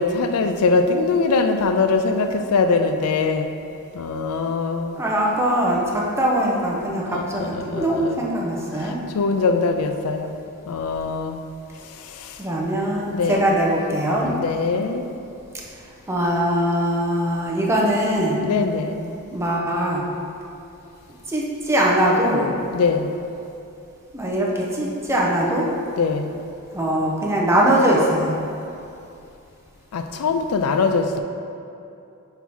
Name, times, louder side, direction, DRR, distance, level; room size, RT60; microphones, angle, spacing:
voice 1, 0.0-3.5 3.9-5.0 7.1-8.2 8.8-10.3 10.7-11.4 11.9-12.4 13.1-13.6 14.2-15.0 18.4-19.1 22.7-23.1 26.0-26.4 29.9-31.2, left 4 dB, 75° left, 7 dB, 0.4 m, -22 dB
voice 2, 4.9-9.0 12.4-14.4 16.1-18.4 19.3-20.0 21.3-22.5 24.1-25.7 26.7-28.3, right 1 dB, 10° right, -3 dB, 0.7 m, -21 dB
4.6 x 4.5 x 5.4 m, 2.7 s
head